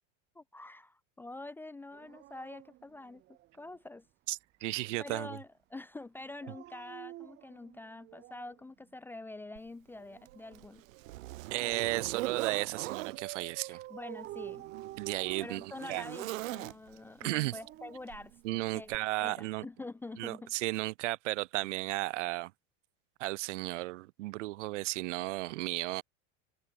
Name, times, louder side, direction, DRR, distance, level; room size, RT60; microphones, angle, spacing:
voice 1, 0.3-3.2 3.5-4.1 5.0-10.8 13.7-14.7 15.4-18.9 19.2-20.6, left 2 dB, 5° left, 0.8 m, -46 dB
Dog, 1.9-3.8 6.2-8.6 9.9-11.6 12.7-16.3 17.2-18.9 20.2-20.4, right 15 dB, 25° right, 1.8 m, -49 dB
voice 2, 4.3-5.4 11.5-13.8 15.0-16.0 17.2-17.6 18.4-19.7 20.2-22.5 23.2-26.0, right 19 dB, 65° right, 2.1 m, -34 dB
Zipper (clothing), 9.6-9.7 10.3-13.2 14.2-17.1 18.1-18.3 18.9-19.0, right 18 dB, 85° right, 1.5 m, -41 dB
supercardioid pair, 175°, 39 cm